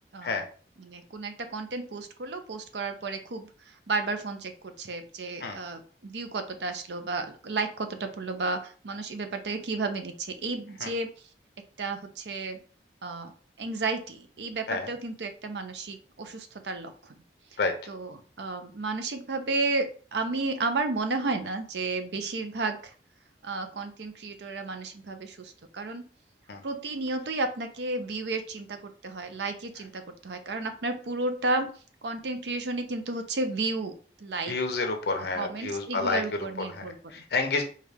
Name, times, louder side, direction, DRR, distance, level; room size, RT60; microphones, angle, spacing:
voice 1, 0.8-3.5 3.9-11.1 11.8-12.6 13.0-13.3 13.6-17.1 17.9-19.9 20.1-22.9 23.4-26.1 26.6-31.7 32.0-34.0 34.2-34.5 35.4-37.2, right 3 dB, 80° right, 7 dB, 0.6 m, -32 dB
voice 2, 34.5-36.2 36.6-37.6, left 3 dB, 70° left, 5 dB, 0.8 m, -29 dB
4.6 x 2.4 x 3.5 m, 0.41 s
head